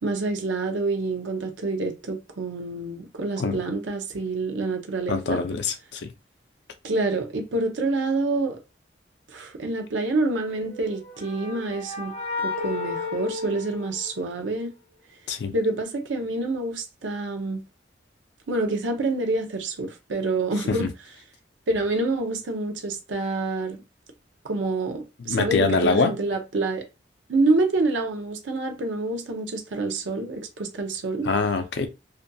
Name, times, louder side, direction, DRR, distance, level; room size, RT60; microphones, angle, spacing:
voice 1, 0.0-5.4 6.8-8.6 9.3-12.1 12.4-14.7 15.5-17.6 18.5-20.9 21.7-23.8 24.4-26.8 27.3-31.3, right 2 dB, 85° right, 0.6 m, -27 dB
voice 2, 5.1-6.1 15.3-15.5 20.7-20.9 25.2-26.2 31.2-31.9, left 4 dB, 65° left, 0.4 m, -24 dB
sound 1, 10.6-14.5, left 4 dB, 40° left, 0.8 m, -33 dB
2.6 x 2.5 x 2.2 m
head